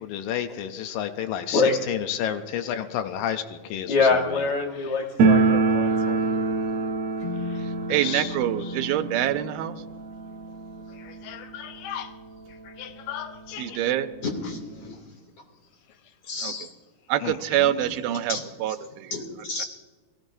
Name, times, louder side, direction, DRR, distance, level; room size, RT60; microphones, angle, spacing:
voice 1, 0.0-1.6 1.9-3.9 7.5-7.6 7.9-8.3 11.0-12.1 12.7-13.8 17.2-17.7, left 10 dB, 80° left, 8 dB, 2.4 m, -32 dB
voice 2, 3.9-6.2 14.8-14.9, left 4 dB, 60° left, 1 dB, 2.5 m, -24 dB
sound 1, 5.2-11.9 12.2-12.3 12.5-12.6 13.4-13.5 13.8-14.9, right 4 dB, 70° right, 1.6 m, -25 dB
sound 2, 7.2-11.0, left 3 dB, 15° left, 1.1 m, -38 dB
voice 3, 7.6-9.8 13.6-14.1 16.4-16.5 17.1-19.1, right 12 dB, 90° right, 11 dB, 2.5 m, -26 dB
voice 4, 14.2-15.2 16.2-16.7 18.3-18.4 19.1-19.6, left 3 dB, 45° left, 0 dB, 3.4 m, -32 dB
22.5 x 17.0 x 2.7 m, 1.3 s
omnidirectional pair, 4.1 m